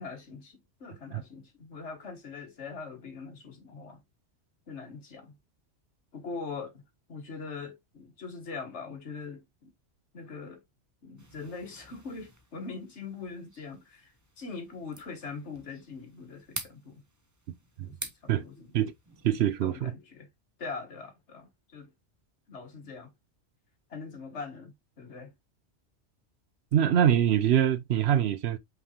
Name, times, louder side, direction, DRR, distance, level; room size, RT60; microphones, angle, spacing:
voice 1, 0.0-4.0 4.7-5.3 6.1-6.8 7.1-9.7 10.1-10.6 11.0-17.0 17.8-18.7 19.6-20.3 20.6-21.9 22.5-23.1 23.9-25.3, left 4 dB, 75° left, 1.6 m, -42 dB
sound 1, 11.2-19.6, right 2 dB, 20° right, 0.8 m, -47 dB
voice 2, 19.2-19.9 26.7-28.6, right 10 dB, 70° right, 0.8 m, -24 dB
5.4 x 3.3 x 2.8 m
omnidirectional pair, 1.2 m